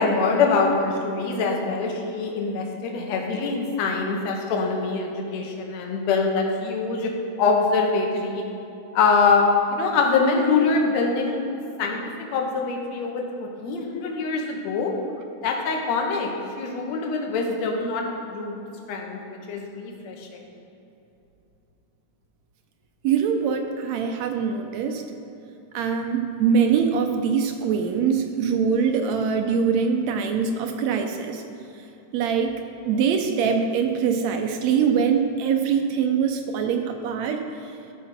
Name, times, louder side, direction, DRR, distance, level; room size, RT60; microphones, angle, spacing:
voice 1, 0.0-7.1 7.4-8.4 8.9-11.4 11.8-12.0 12.3-14.9 15.4-16.3 16.6-18.1 18.3-18.6 18.9-20.3, left 4 dB, 70° left, 1 dB, 2.2 m, -24 dB
voice 2, 23.0-25.0 25.7-31.4 32.1-32.5 32.9-37.4, right 6 dB, 75° right, 5 dB, 1.8 m, -23 dB
13.0 x 5.0 x 5.8 m, 2.8 s
omnidirectional pair, 3.4 m